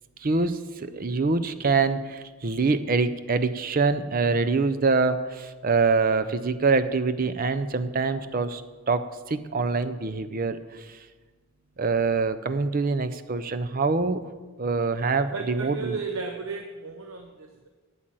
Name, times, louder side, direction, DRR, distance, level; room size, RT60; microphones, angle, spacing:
voice 1, 0.2-8.6 8.9-11.0 11.8-14.2 14.6-16.0, right 4 dB, 40° right, 11 dB, 0.5 m, -25 dB
voice 2, 15.3-17.7, right 4 dB, 70° right, 4 dB, 0.9 m, -34 dB
8.7 x 8.5 x 7.6 m, 1.3 s
head